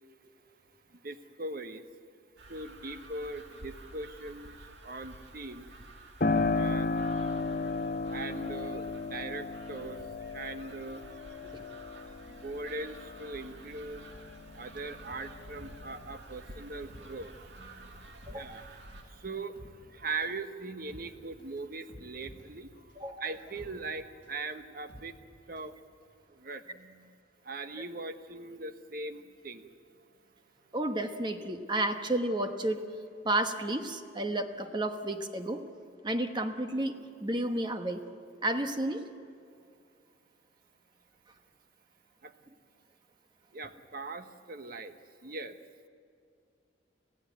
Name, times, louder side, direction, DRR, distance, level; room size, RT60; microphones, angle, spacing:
voice 1, 0.9-1.8 2.5-5.7 6.5-6.9 8.1-11.0 12.3-14.1 14.4-22.7 23.2-25.1 25.5-25.8 26.3-27.1 27.4-29.7 42.2-42.3 43.5-45.6, right 3 dB, 50° right, 9 dB, 1.1 m, -41 dB
sound 1, 2.4-19.0, right 2 dB, 75° right, 2.2 m, -51 dB
Piano, 6.2-14.6 15.1-16.1, left 3 dB, 50° left, 1.3 m, -34 dB
sound 2, 15.6-25.8 26.1-26.2, left 1 dB, 30° left, 7.5 m, -54 dB
voice 2, 18.3-18.6 23.0-23.2 30.7-32.8 33.2-35.6 36.0-38.0 38.4-39.0, right 1 dB, 25° right, 7 dB, 1.2 m, -32 dB
27.0 x 15.5 x 9.3 m, 2.4 s
head